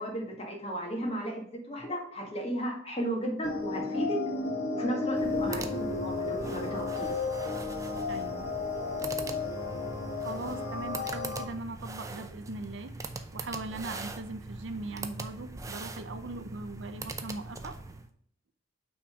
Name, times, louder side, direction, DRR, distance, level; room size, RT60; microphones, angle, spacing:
voice 1, 0.0-4.2 4.7-7.1, equal, 30° left, 0 dB, 1.7 m, -34 dB
sound 1, 3.4-11.4, left 3 dB, 80° left, 1.7 m, -33 dB
sound 2, 5.1-18.1, right 3 dB, 15° right, 0.5 m, -42 dB
voice 2, 8.1-8.5 10.2-12.9 13.3-17.8, right 2 dB, 65° right, 10 dB, 0.6 m, -40 dB
6.1 x 4.0 x 4.8 m, 0.62 s
head